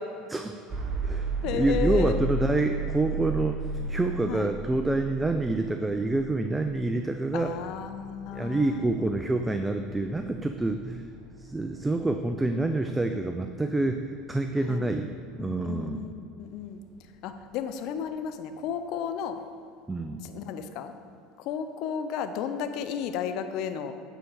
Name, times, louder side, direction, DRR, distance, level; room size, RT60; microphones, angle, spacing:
voice 1, 0.3-0.6 1.0-7.5 8.3-11.1 11.4-15.1 15.4-16.1 19.9-20.2, right 2 dB, 10° right, 6 dB, 0.5 m, -27 dB
sound 1, 0.7-16.6, right 2 dB, 35° right, 1.3 m, -36 dB
voice 2, 1.4-2.1 4.3-4.5 7.3-9.1 14.7-14.9 15.4-16.8 17.2-19.4 20.2-20.9 21.4-23.9, left 8 dB, 65° left, 8 dB, 0.7 m, -33 dB
9.1 x 4.6 x 7.0 m, 2.4 s
hypercardioid pair, 90°, 0 cm